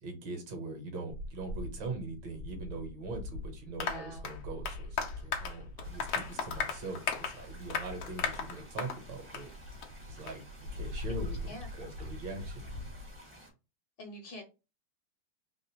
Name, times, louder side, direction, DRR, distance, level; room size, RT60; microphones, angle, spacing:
voice 1, 0.0-9.5 10.1-12.6, right 3 dB, 65° right, 4 dB, 1.5 m, -42 dB
sound 1, 1.1-13.2, left 2 dB, 80° right, 1.4 m, -43 dB
voice 2, 3.7-4.3 11.1-11.7 14.0-14.4, left 1 dB, 70° left, 3 dB, 1.1 m, -46 dB
Applause, 3.8-9.0 9.3-9.5 9.8-9.9 10.3-10.4, left 6 dB, 90° left, 0.8 m, -36 dB
sound 2, 5.8-13.5, equal, 35° right, 0.5 m, -54 dB
3.6 x 2.4 x 2.8 m, 0.29 s
omnidirectional pair, 2.4 m